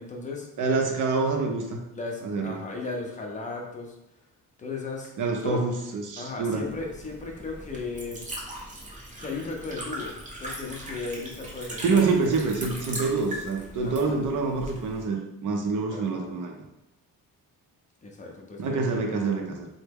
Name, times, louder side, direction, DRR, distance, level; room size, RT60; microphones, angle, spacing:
voice 1, 0.0-0.5 1.9-3.9 4.6-5.1 5.4-5.6 6.2-8.2 9.2-10.1 10.4-12.1 13.8-14.2 15.9-16.4 18.0-19.0, left 3 dB, 20° left, 0 dB, 0.5 m, -36 dB
voice 2, 0.6-1.8 2.2-2.6 5.2-6.7 11.8-16.5 18.6-19.7, right 4 dB, 55° right, 2 dB, 0.6 m, -26 dB
Liquid, 6.5-15.0, right 1 dB, 20° right, 0.6 m, -39 dB
3.3 x 2.1 x 3.4 m, 0.91 s
cardioid pair, 150°, 37 cm